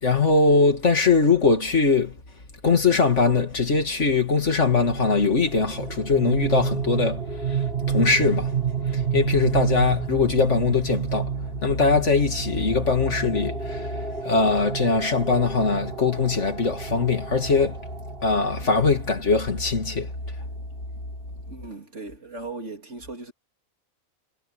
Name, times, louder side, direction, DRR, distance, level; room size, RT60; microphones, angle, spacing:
voice 1, 0.0-2.2 2.6-7.2 7.5-8.5 8.9-11.3 11.6-17.8 18.2-20.1, left 4 dB, 60° left, 2.7 m, -21 dB
sound 1, 4.5-19.4, right 7 dB, 45° right, 2.2 m, -30 dB
voice 2, 21.5-23.3, right 3 dB, 60° right, 3.3 m, -37 dB
omnidirectional pair, 1.4 m